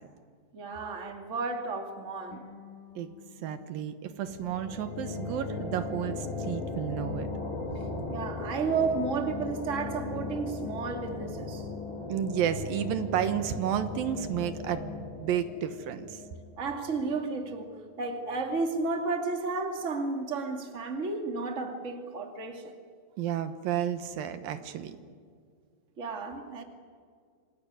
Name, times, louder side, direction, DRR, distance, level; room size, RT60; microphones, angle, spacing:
voice 1, 0.5-2.4 8.1-11.7 16.6-17.7 18.0-22.7 26.0-26.6, right 4 dB, 25° right, 4 dB, 2.2 m, -32 dB
sound 1, 2.3-5.4, left 6 dB, 90° left, 4.7 m, -54 dB
voice 2, 3.4-7.3 12.1-16.2 23.2-25.0, right 10 dB, 80° right, 10 dB, 2.9 m, -32 dB
sound 2, 4.2-17.6, left 3 dB, 35° left, 3.9 m, -38 dB
27.5 x 20.5 x 9.6 m, 2.1 s
omnidirectional pair, 4.1 m